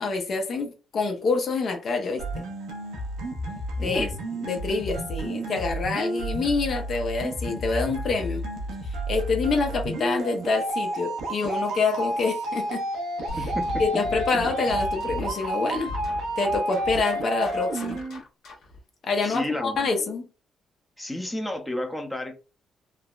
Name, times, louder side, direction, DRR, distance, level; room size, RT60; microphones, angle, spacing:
voice 1, 0.0-2.4 3.8-4.1 4.4-8.4 9.1-12.8 13.8-15.9 16.4-18.0 19.0-20.3, left 4 dB, 55° left, 0.7 m, -26 dB
sound 1, 2.2-18.2, right 1 dB, 80° right, 0.8 m, -31 dB
voice 2, 3.8-4.1 13.4-13.8 19.2-19.9 21.0-22.4, left 1 dB, 10° left, 0.6 m, -31 dB
sound 2, 13.3-18.8, left 2 dB, 75° left, 1.1 m, -37 dB
3.3 x 2.1 x 2.4 m
cardioid pair, 90°, 0 cm